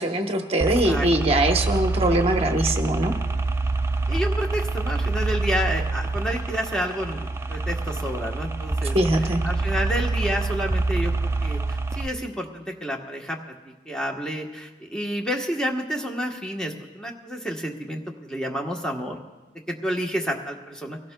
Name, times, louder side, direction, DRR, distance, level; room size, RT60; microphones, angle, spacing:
voice 1, 0.0-3.1 8.9-9.4, right 1 dB, 35° right, 3 dB, 1.0 m, -22 dB
sound 1, 0.6-12.1, right 3 dB, 15° right, 0.4 m, -26 dB
voice 2, 4.1-9.0 9.4-13.4 13.9-18.0 18.3-19.2 19.7-21.0, equal, 5° left, 0 dB, 1.1 m, -29 dB
24.0 x 17.0 x 2.2 m, 1.2 s
head